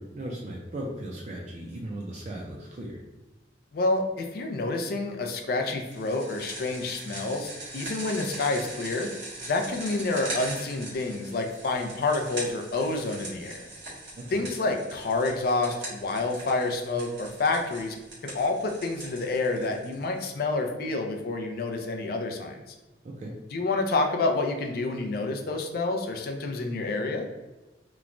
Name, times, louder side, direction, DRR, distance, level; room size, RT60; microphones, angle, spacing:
voice 1, 0.0-3.0 14.1-14.4 23.0-23.3, right 1 dB, 40° right, -2 dB, 0.4 m, -37 dB
voice 2, 3.7-9.1 9.4-13.7 14.3-18.0 18.2-22.6 23.5-27.3, left 3 dB, 55° left, 4 dB, 0.4 m, -28 dB
sound 1, 5.9-20.2, right 2 dB, 90° right, 1.3 m, -41 dB
3.0 x 2.1 x 2.5 m, 1.1 s
head